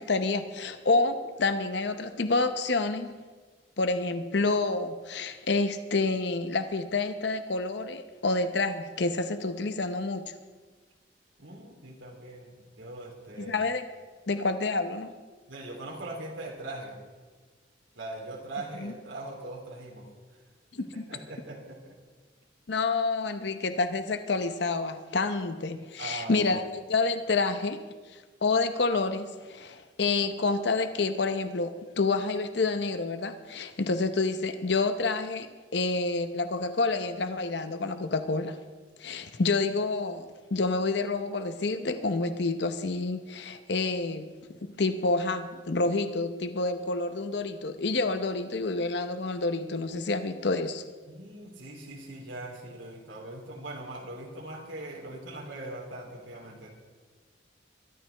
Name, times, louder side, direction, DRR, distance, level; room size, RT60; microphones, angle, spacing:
voice 1, 0.0-3.1 3.8-10.2 13.4-13.8 14.3-15.1 18.8-18.9 20.7-21.0 22.7-26.6 26.9-27.8 28.1-35.5 35.7-38.6 39.0-44.3 44.6-50.8, left 3 dB, 60° left, 9 dB, 0.8 m, -28 dB
voice 2, 11.4-13.6 15.5-17.0 17.9-20.1 20.3-20.4 20.8-22.0 26.0-26.6 51.1-56.7, right 2 dB, 85° right, -2 dB, 3.0 m, -41 dB
23.0 x 12.5 x 3.4 m, 1.4 s
head